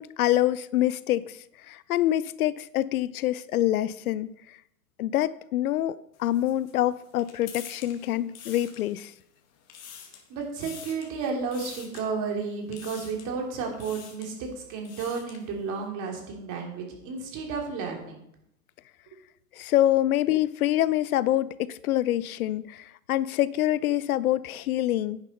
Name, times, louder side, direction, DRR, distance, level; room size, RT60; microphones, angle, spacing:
voice 1, 0.0-1.4 1.7-4.3 5.0-9.1 19.5-25.2, left 13 dB, 65° left, 18 dB, 0.6 m, -26 dB
sound 1, 6.1-9.2 9.5-10.3 10.6-11.1 11.5-12.0 12.7-13.3 13.7-14.3 14.7-15.5, left 8 dB, 35° left, 1.9 m, -46 dB
voice 2, 10.3-18.2, right 5 dB, 40° right, 1 dB, 3.3 m, -32 dB
10.5 x 9.5 x 4.3 m, 0.78 s
hypercardioid pair, 110°, 47 cm